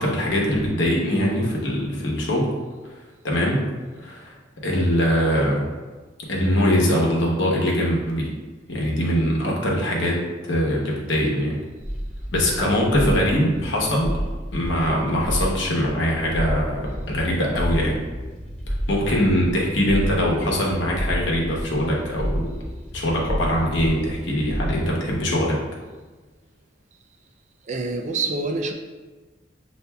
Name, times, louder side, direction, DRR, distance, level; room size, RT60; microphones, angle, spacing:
voice 1, 0.0-2.5 3.2-3.6 4.0-4.3 4.6-5.6 6.3-8.3 8.7-10.2 10.5-11.6 12.3-14.2 14.5-18.0 18.7-22.5 22.9-25.6, equal, 90° left, -2 dB, 0.9 m, -22 dB
sound 1, 11.8-25.4, equal, 5° left, 0.8 m, -30 dB
voice 2, 27.7-28.7, right 3 dB, 40° right, 4 dB, 0.4 m, -26 dB
6.6 x 2.6 x 2.2 m, 1.3 s
head